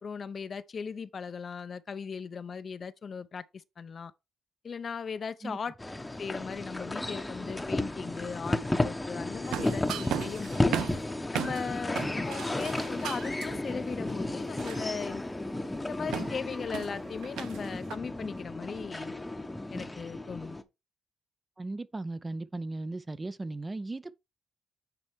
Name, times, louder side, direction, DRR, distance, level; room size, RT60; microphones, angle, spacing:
voice 1, 0.0-4.1 4.6-5.7 6.2-10.8 11.3-15.2 15.8-19.1 19.7-20.6, left 6 dB, 45° left, 0.5 m, -38 dB
sound 1, 5.8-20.6, left 2 dB, 15° left, 0.8 m, -33 dB
sound 2, 9.5-11.7 12.0-13.5 14.1-15.2 16.1-18.0, right 10 dB, 85° right, 0.6 m, -37 dB
voice 2, 21.6-24.2, right 2 dB, 20° right, 0.5 m, -37 dB
9.0 x 4.2 x 3.4 m
cardioid pair, 85°, 0 cm